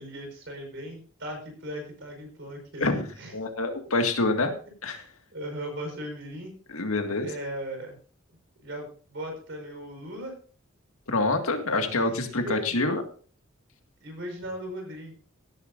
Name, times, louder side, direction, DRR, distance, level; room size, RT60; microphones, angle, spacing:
voice 1, 0.0-3.3 5.3-6.5 7.2-8.0 8.6-10.3 11.7-12.6 14.0-15.1, equal, 55° right, 3 dB, 5.2 m, -38 dB
voice 2, 3.3-4.5 4.8-5.0 6.7-7.3 11.1-13.0, left 2 dB, 85° left, 5 dB, 2.0 m, -26 dB
16.5 x 11.0 x 2.6 m, 0.40 s
head